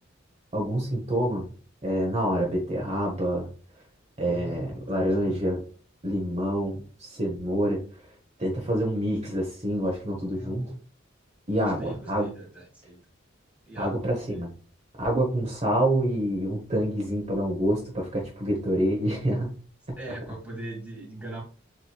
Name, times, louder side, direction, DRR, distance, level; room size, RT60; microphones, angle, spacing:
voice 1, 0.5-1.4 1.8-3.5 4.2-5.6 6.0-6.8 7.1-7.8 8.4-10.7 11.5-12.3 13.8-14.5 15.0-19.5 19.9-20.0, right 1 dB, 35° right, 0 dB, 1.0 m, -27 dB
voice 2, 4.2-5.4 10.2-10.8 11.6-13.0 13.7-14.5 20.0-21.4, right 2 dB, 5° right, -3 dB, 1.8 m, -41 dB
7.4 x 3.1 x 2.3 m, 0.39 s
head